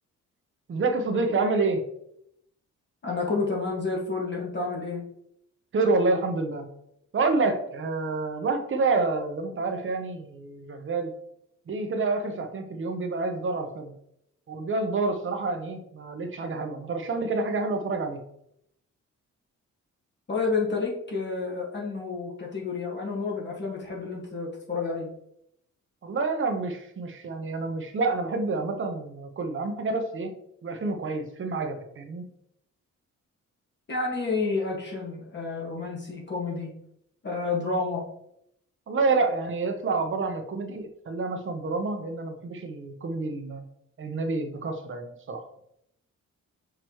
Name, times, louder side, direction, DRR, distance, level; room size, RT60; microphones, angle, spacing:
voice 1, 0.7-1.9 5.7-6.7 7.1-11.1 11.7-13.9 14.5-18.2 26.0-30.4 30.6-32.3 38.9-43.6 44.0-45.4, right 3 dB, 40° right, 5 dB, 0.9 m, -28 dB
voice 2, 3.0-5.0 20.3-25.1 33.9-36.7 37.2-38.0, left 4 dB, 35° left, -2 dB, 1.8 m, -30 dB
6.4 x 4.8 x 3.1 m, 0.75 s
cardioid pair, 135°, 30 cm